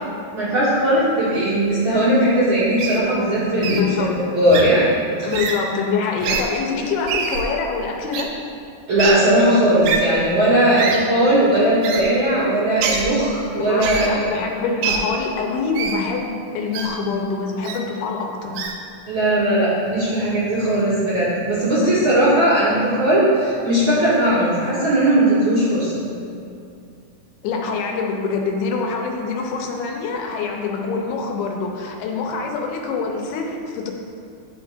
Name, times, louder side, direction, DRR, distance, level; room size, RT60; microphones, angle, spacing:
voice 1, 0.3-4.9 5.2-5.3 8.9-14.2 19.1-26.0, right 1 dB, 40° right, -12 dB, 2.1 m, -18 dB
Wild animals, 2.8-3.0 3.6-3.8 4.5-4.6 5.3-5.5 6.2-6.4 7.1-7.4 8.1-8.2 9.0-9.1 9.8-10.0 10.8-11.0 11.8-12.0 12.8-13.0 13.8-14.1 14.8-15.0 15.8-16.0 16.7-16.9 17.6-17.8 18.6-18.7, right 6 dB, 90° right, 2.8 m, -24 dB
voice 2, 3.4-4.3 5.3-8.3 13.6-18.5 27.4-33.9, left 4 dB, 90° left, 1 dB, 2.7 m, -25 dB
11.0 x 7.1 x 2.5 m, 2.5 s
omnidirectional pair, 4.5 m